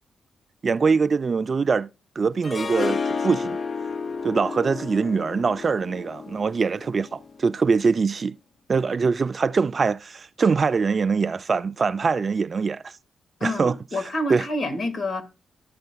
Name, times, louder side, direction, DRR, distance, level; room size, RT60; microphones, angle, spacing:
voice 1, 0.6-1.9 2.2-3.6 4.2-8.4 8.7-12.9 13.4-14.5, right 5 dB, 40° right, 0.3 m, -23 dB
Harp, 2.4-7.5, left 5 dB, 40° left, 0.4 m, -31 dB
voice 2, 13.4-15.2, left 1 dB, 55° left, 2.0 m, -28 dB
12.5 x 6.6 x 2.3 m
cardioid pair, 105°, 0 cm